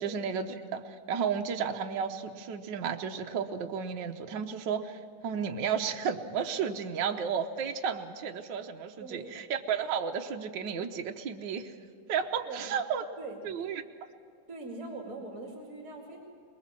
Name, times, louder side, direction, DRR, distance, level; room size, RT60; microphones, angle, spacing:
voice 1, 0.0-11.7 12.1-13.0 13.4-13.8, right 7 dB, 65° right, 4 dB, 1.6 m, -33 dB
voice 2, 9.0-9.3 12.4-12.7 13.2-13.4 14.5-16.2, right 2 dB, 40° right, 1 dB, 2.9 m, -42 dB
23.5 x 21.0 x 7.5 m, 2.2 s
omnidirectional pair, 2.3 m